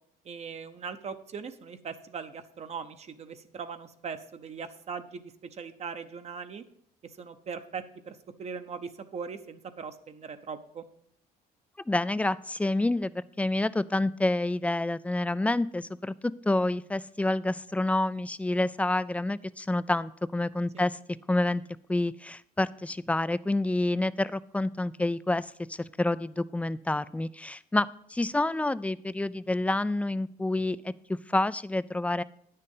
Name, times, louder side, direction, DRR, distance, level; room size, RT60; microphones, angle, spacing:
voice 1, 0.2-6.6 7.2-10.8 20.7-20.8, right 6 dB, 40° right, 9 dB, 0.8 m, -40 dB
voice 2, 11.9-21.0 21.3-21.6 21.9-30.9 31.3-32.2, left 2 dB, 10° left, 17 dB, 0.3 m, -28 dB
9.7 x 6.7 x 5.4 m, 0.67 s
cardioid pair, 110°, 17 cm